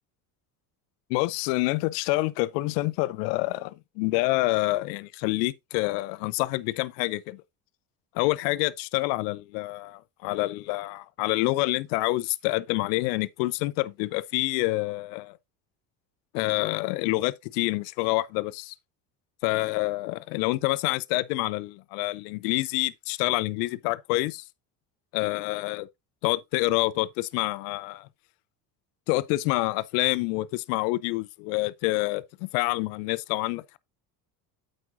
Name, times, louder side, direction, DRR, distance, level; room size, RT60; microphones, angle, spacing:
voice 1, 1.1-7.4 8.1-15.4 16.3-18.7 19.4-24.4 25.1-25.9 26.2-28.1 29.1-33.8, left 20 dB, 75° left, 0.7 m, -27 dB
8.5 x 7.8 x 2.6 m
hypercardioid pair, 75°, 50 cm